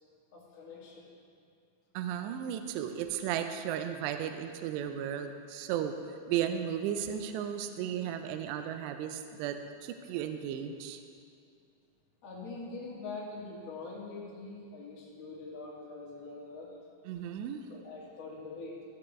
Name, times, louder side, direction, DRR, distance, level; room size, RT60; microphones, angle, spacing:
voice 1, 0.3-1.1 12.2-16.7 17.7-18.8, left 3 dB, 40° left, -7 dB, 2.4 m, -43 dB
voice 2, 2.0-5.9 6.3-9.6 9.8-11.0 17.1-17.6, right 9 dB, 85° right, 7 dB, 2.5 m, -34 dB
15.5 x 8.2 x 3.6 m, 2.3 s
omnidirectional pair, 5.4 m